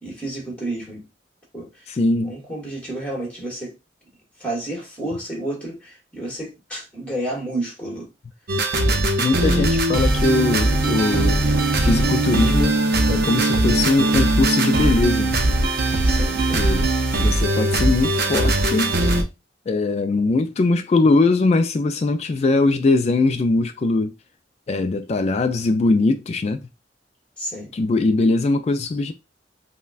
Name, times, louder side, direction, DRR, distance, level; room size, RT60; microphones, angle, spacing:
voice 1, 0.0-1.0 1.5-1.9 2.2-3.7 4.4-8.1 8.9-9.0 16.0-16.6 27.4-27.7, right 1 dB, 10° left, 1.4 m, -31 dB
voice 2, 1.9-2.3 9.2-11.5 11.8-12.8 13.1-15.4 16.6-16.9 17.2-18.9 19.7-24.1 24.7-26.6 27.7-29.1, left 3 dB, 35° left, 0.3 m, -21 dB
sound 1, 8.5-19.2, right 2 dB, 55° right, 0.6 m, -20 dB
5.4 x 2.2 x 2.4 m
head